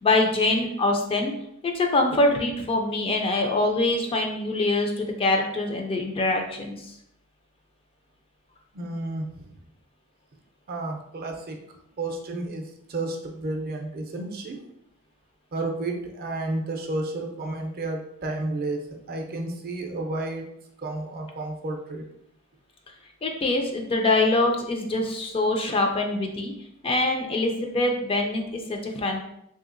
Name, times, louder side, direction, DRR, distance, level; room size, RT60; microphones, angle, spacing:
voice 1, 0.0-1.3 1.6-6.8 23.2-26.5 26.8-29.2, left 2 dB, 25° left, 3 dB, 0.3 m, -24 dB
voice 2, 8.7-9.6 10.7-11.6 12.0-14.6 15.5-18.8 19.1-20.5 20.8-22.0, right 2 dB, 45° right, 2 dB, 0.5 m, -31 dB
3.3 x 2.7 x 2.5 m, 0.77 s
head